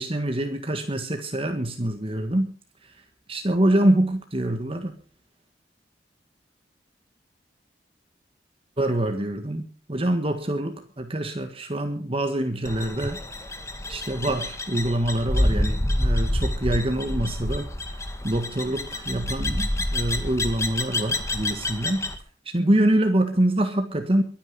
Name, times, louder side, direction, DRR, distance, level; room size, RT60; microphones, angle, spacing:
voice 1, 0.0-2.5 3.3-4.9 8.8-13.2 13.9-17.7 18.2-22.1 22.4-24.2, right 1 dB, 35° right, 6 dB, 1.6 m, -25 dB
sound 1, 12.6-22.2, left 1 dB, 15° left, 1.9 m, -28 dB
23.5 x 9.4 x 5.4 m, 0.40 s
head